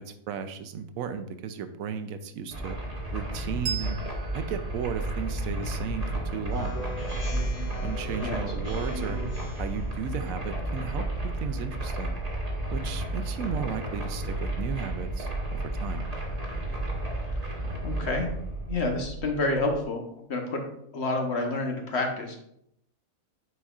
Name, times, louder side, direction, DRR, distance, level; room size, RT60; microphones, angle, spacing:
voice 1, 0.0-2.8 3.1-4.0 4.3-6.8 7.8-9.2 9.6-12.2 12.7-16.1, right 7 dB, 85° right, 10 dB, 1.0 m, -35 dB
sound 1, 2.5-19.8, right 1 dB, 30° right, 1.3 m, -32 dB
Bell, 3.6-6.7, right 8 dB, 65° right, 0.8 m, -40 dB
Speech synthesizer, 6.5-9.8, right 1 dB, 80° left, 2.1 m, -39 dB
voice 2, 17.8-18.3 18.7-20.0 20.3-20.6 20.9-22.4, left 2 dB, 55° left, 3 dB, 1.2 m, -28 dB
9.2 x 4.3 x 2.4 m, 0.74 s
omnidirectional pair, 1.4 m